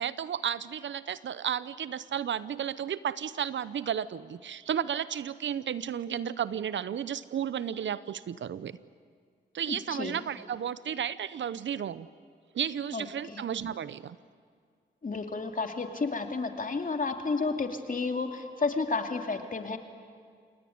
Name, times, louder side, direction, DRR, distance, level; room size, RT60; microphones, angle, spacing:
voice 1, 0.0-8.8 9.5-12.1 12.5-14.2, right 9 dB, 75° right, 16 dB, 0.8 m, -33 dB
voice 2, 9.7-10.2 12.9-13.4 15.0-19.8, left 4 dB, 45° left, 5 dB, 2.8 m, -31 dB
29.0 x 18.5 x 9.5 m, 2.1 s
cardioid pair, 50°, 20 cm